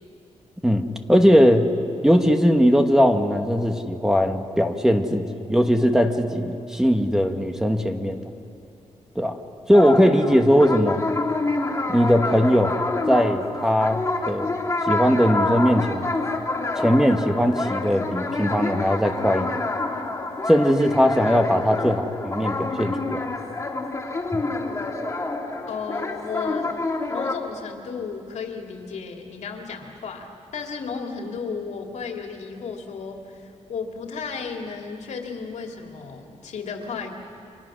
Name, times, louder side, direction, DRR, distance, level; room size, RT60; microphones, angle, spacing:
voice 1, 0.6-1.7 2.0-8.2 9.2-9.4 9.7-11.0 11.9-12.7 13.1-14.0 14.3-14.5 14.9-16.1 16.8-19.5 20.5-23.2, equal, 5° right, 5 dB, 1.1 m, -19 dB
sound 1, 9.7-27.3, left 2 dB, 25° left, 2.2 m, -28 dB
voice 2, 25.7-26.7 27.1-30.3 30.5-37.1, left 5 dB, 75° left, 2 dB, 2.7 m, -34 dB
30.0 x 25.5 x 6.3 m, 2.6 s
wide cardioid pair, 170°, 12 cm